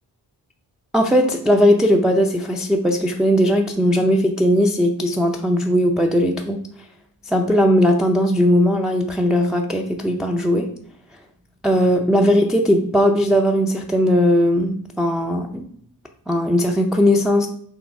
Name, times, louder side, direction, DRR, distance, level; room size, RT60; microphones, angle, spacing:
voice 1, 0.9-6.6 7.3-10.7 11.6-15.6 16.3-17.5, equal, ahead, 1 dB, 0.4 m, -18 dB
6.3 x 3.3 x 4.5 m, 0.65 s
wide cardioid pair, 140°, 41 cm